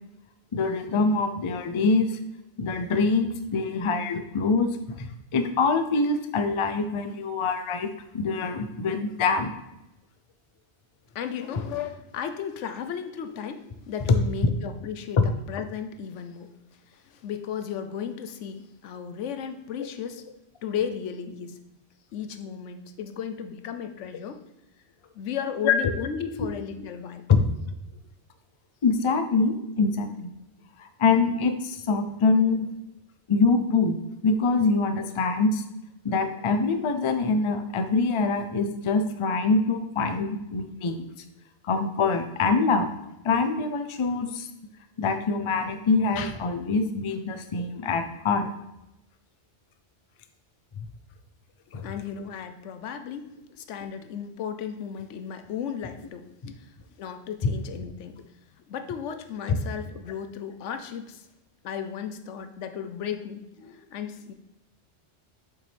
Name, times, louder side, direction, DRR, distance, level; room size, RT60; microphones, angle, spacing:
voice 1, 0.5-2.1 2.6-7.9 8.1-9.5 25.6-25.7 27.3-27.4 28.8-30.3 30.8-32.7 33.3-34.0 34.2-35.6 36.0-41.1 41.6-42.9 43.2-44.5 45.0-48.5 50.8-50.9 51.7-51.9 57.4-57.5, left 4 dB, 40° left, 7 dB, 0.4 m, -24 dB
voice 2, 11.1-16.8 17.0-20.3 20.6-21.6 22.1-24.4 25.1-27.3 51.8-56.7 57.0-58.2 58.7-61.3 61.6-64.3, left 8 dB, 85° left, 8 dB, 1.0 m, -35 dB
7.2 x 5.7 x 3.4 m, 0.91 s
omnidirectional pair, 1.2 m